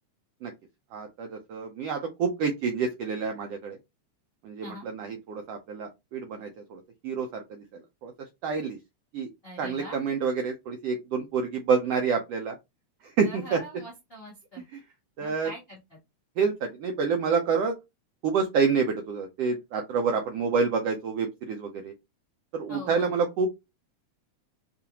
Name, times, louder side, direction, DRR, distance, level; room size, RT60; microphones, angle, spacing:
voice 1, 0.9-3.8 4.4-8.1 8.4-8.8 9.1-9.3 9.6-12.6 13.0-13.6 14.7-14.8 15.2-15.5 16.4-17.8 18.2-21.9 22.5-23.5, right 5 dB, 85° right, 4 dB, 1.4 m, -28 dB
voice 2, 9.4-10.0 13.2-14.6 15.2-16.0 22.7-23.1, equal, 80° left, -3 dB, 0.5 m, -43 dB
5.3 x 2.5 x 2.9 m, 0.22 s
omnidirectional pair, 3.5 m